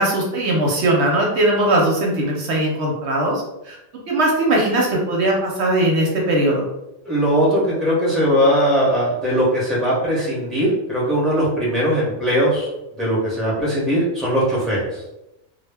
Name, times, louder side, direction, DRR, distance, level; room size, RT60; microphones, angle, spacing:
voice 1, 0.0-3.8 4.1-6.6, right 1 dB, 70° right, -2 dB, 0.8 m, -19 dB
voice 2, 7.1-12.7 13.0-14.8, equal, ahead, -6 dB, 0.7 m, -19 dB
2.2 x 2.0 x 3.3 m, 0.91 s
omnidirectional pair, 1.3 m